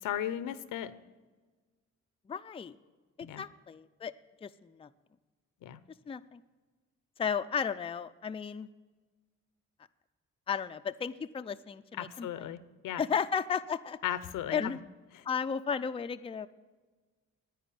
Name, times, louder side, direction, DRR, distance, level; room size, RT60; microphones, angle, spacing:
voice 1, 0.0-0.9 3.2-3.4 5.6-5.8 12.0-13.0 14.0-14.7 15.1-15.3, left 11 dB, 80° left, 14 dB, 0.8 m, -36 dB
voice 2, 2.3-2.8 3.2-4.1 4.4-4.9 6.1-6.4 7.2-8.7 10.5-12.5 13.0-14.0 14.5-14.8 15.2-16.5, left 6 dB, 20° left, 10 dB, 0.4 m, -34 dB
10.5 x 8.9 x 10.0 m, 1.4 s
cardioid pair, 80°, 31 cm